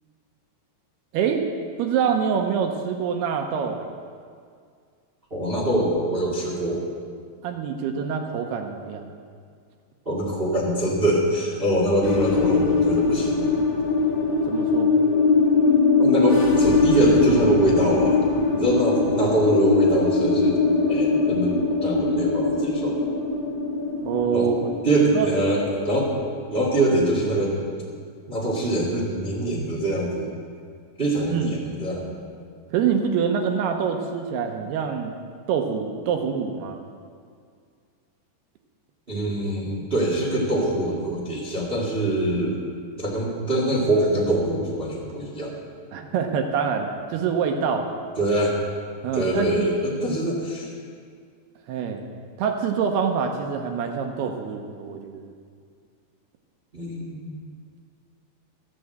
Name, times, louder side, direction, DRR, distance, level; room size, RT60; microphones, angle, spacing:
voice 1, 1.1-1.4 1.8-3.9 7.4-9.1 14.5-14.9 24.0-24.7 25.0-25.3 31.3-31.5 32.7-35.1 35.5-36.8 45.9-47.9 49.0-49.7 51.7-52.0 52.4-55.3, right 6 dB, 75° right, 4 dB, 2.6 m, -25 dB
voice 2, 5.3-6.8 10.0-13.3 16.0-18.2 18.5-20.6 20.9-23.0 24.3-24.5 24.8-26.1 26.5-27.6 28.3-30.3 31.0-32.1 39.1-42.6 43.0-45.5 48.2-48.5 49.1-50.7 56.7-57.4, right 1 dB, 50° right, -3 dB, 0.6 m, -23 dB
sound 1, 12.0-26.7, left 3 dB, 60° left, 1.6 m, -22 dB
13.0 x 9.0 x 7.9 m, 2.1 s
omnidirectional pair, 5.1 m